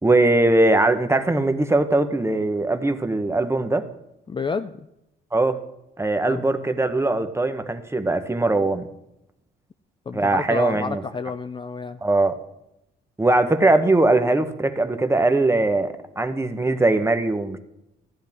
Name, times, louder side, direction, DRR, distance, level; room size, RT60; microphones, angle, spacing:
voice 1, 0.0-3.9 5.3-5.6 6.0-8.9 10.1-11.0 12.0-12.3 13.2-17.6, right 2 dB, 15° right, 9 dB, 1.0 m, -20 dB
voice 2, 4.3-4.9 6.3-6.4 10.1-12.0, left 5 dB, 25° left, 10 dB, 0.4 m, -30 dB
14.5 x 10.5 x 3.6 m, 0.87 s
cardioid pair, 90°, 20 cm